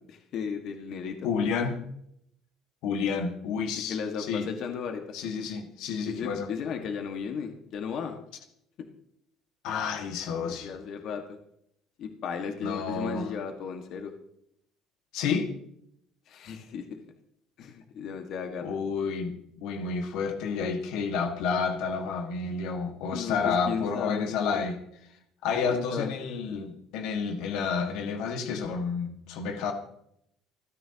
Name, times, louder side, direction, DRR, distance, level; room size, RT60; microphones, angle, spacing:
voice 1, 0.1-1.2 3.9-5.0 6.1-8.2 10.4-11.4 12.0-14.1 16.3-16.8 17.6-18.7 23.1-24.6 25.7-26.1, left 6 dB, 60° left, 5 dB, 1.7 m, -35 dB
voice 2, 1.2-1.8 2.8-4.5 5.1-6.5 9.6-10.8 12.6-13.3 15.1-15.5 18.6-24.8 25.4-29.7, left 5 dB, 75° left, 5 dB, 1.8 m, -30 dB
28.5 x 9.9 x 2.9 m, 0.74 s
cardioid pair, 115°, 0 cm